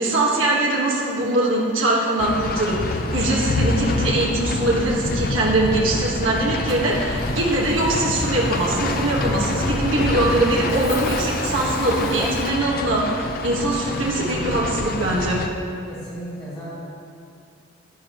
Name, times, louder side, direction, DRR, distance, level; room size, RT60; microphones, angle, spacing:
voice 1, 0.0-15.4, right 2 dB, 70° right, -4 dB, 1.6 m, -22 dB
sound 1, 2.2-15.5, left 2 dB, 45° left, 0.5 m, -26 dB
sound 2, 6.6-12.3, equal, ahead, 0.6 m, -32 dB
Cough, 10.0-12.9, left 3 dB, 75° left, 1.5 m, -38 dB
voice 2, 15.8-16.7, right 1 dB, 20° left, -11 dB, 2.5 m, -35 dB
11.0 x 10.0 x 3.1 m, 2.4 s
head